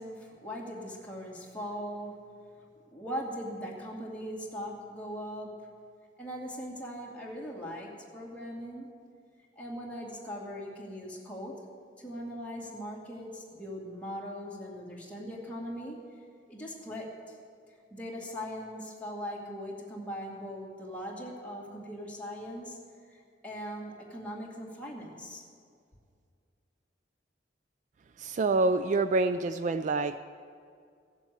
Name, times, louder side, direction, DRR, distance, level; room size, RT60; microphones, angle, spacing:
voice 1, 0.0-2.2 2.9-5.6 6.2-8.9 9.6-11.6 12.0-16.0 16.5-17.4 17.9-22.8 23.1-25.4, equal, 10° left, -4 dB, 2.4 m, -40 dB
voice 2, 28.2-30.1, right 3 dB, 45° right, 11 dB, 0.3 m, -26 dB
15.5 x 7.3 x 8.1 m, 2.3 s
head